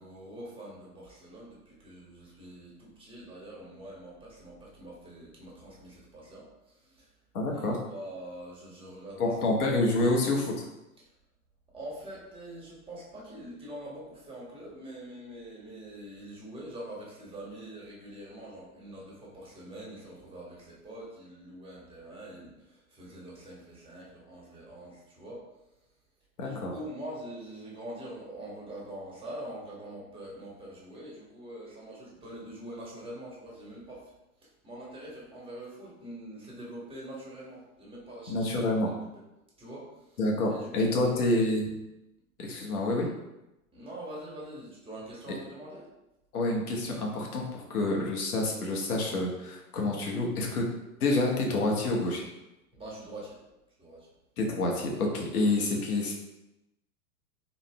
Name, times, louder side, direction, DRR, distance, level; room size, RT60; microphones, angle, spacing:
voice 1, 0.0-6.5 6.8-7.1 7.5-9.6 11.7-25.4 26.4-34.1 34.6-38.7 39.0-39.1 39.6-40.2 40.5-41.2 43.7-45.9 52.7-53.4 53.8-54.1 55.3-55.4, right 1 dB, 10° right, -5 dB, 1.4 m, -44 dB
voice 2, 7.3-7.8 9.2-10.6 26.4-26.7 38.3-38.9 40.2-41.7 42.4-43.1 46.3-50.7 51.0-52.2 54.4-56.1, left 2 dB, 75° left, 0 dB, 1.2 m, -28 dB
4.2 x 3.1 x 3.4 m, 0.93 s
hypercardioid pair, 105°, 44 cm